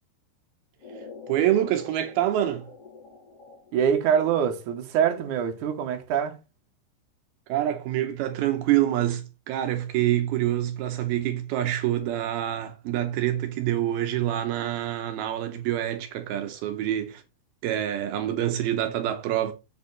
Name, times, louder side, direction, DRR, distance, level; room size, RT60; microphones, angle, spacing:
sound 1, 0.8-4.8, left 4 dB, 35° left, 3.7 m, -47 dB
voice 1, 1.3-2.7 7.5-17.2 17.6-19.5, right 12 dB, 85° right, 2.2 m, -26 dB
voice 2, 3.7-6.4, right 8 dB, 65° right, 2.1 m, -24 dB
8.0 x 6.6 x 4.1 m
omnidirectional pair, 5.4 m